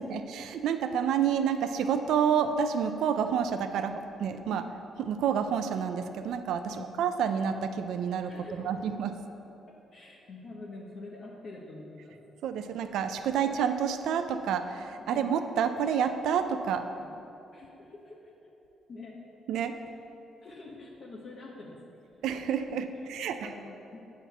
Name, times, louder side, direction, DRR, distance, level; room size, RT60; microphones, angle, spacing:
voice 1, 0.0-4.6 5.0-8.3 8.6-9.1 12.4-16.9 19.5-19.8 22.2-23.4, right 7 dB, 80° right, 8 dB, 0.4 m, -29 dB
voice 2, 8.3-8.7 9.9-12.1 15.0-15.2 16.9-17.2 17.5-18.5 18.9-19.2 20.4-21.8 23.0-24.0, left 3 dB, 50° left, -3 dB, 1.1 m, -46 dB
8.2 x 4.4 x 6.9 m, 2.9 s
cardioid pair, 90°, 0 cm